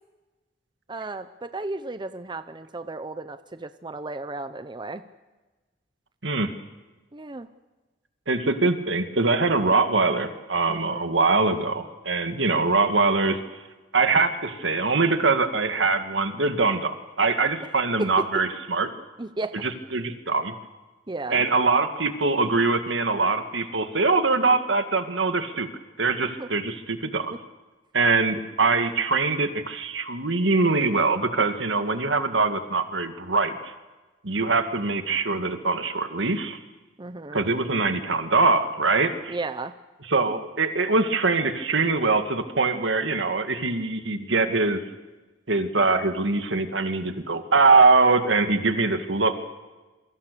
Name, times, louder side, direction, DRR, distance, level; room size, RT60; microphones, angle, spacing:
voice 1, 0.9-5.0 7.1-7.5 10.7-11.1 19.2-19.6 21.1-21.4 26.4-26.5 37.0-37.5 39.3-39.7, right 2 dB, 25° right, 11 dB, 0.8 m, -34 dB
voice 2, 8.3-13.4 13.9-18.9 19.6-20.5 21.3-25.7 26.0-27.3 27.9-33.7 34.2-36.6 37.3-39.4 40.1-44.8 45.5-49.4, right 3 dB, 75° right, 7 dB, 2.1 m, -23 dB
27.5 x 24.0 x 6.9 m, 1.2 s
head